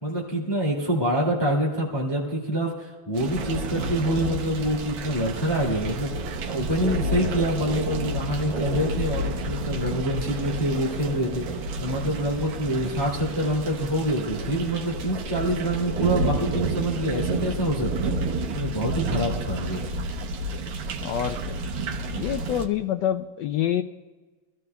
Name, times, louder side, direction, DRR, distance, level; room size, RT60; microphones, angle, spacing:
voice 1, 0.0-6.2 6.4-18.2 18.5-19.8, right 1 dB, 10° left, -3 dB, 2.0 m, -26 dB
sound 1, 3.2-22.7, right 2 dB, 90° right, 1.9 m, -30 dB
voice 2, 21.0-21.6 22.2-23.8, left 10 dB, 80° left, 8 dB, 1.0 m, -27 dB
25.0 x 14.5 x 2.3 m, 1.3 s
omnidirectional pair, 2.4 m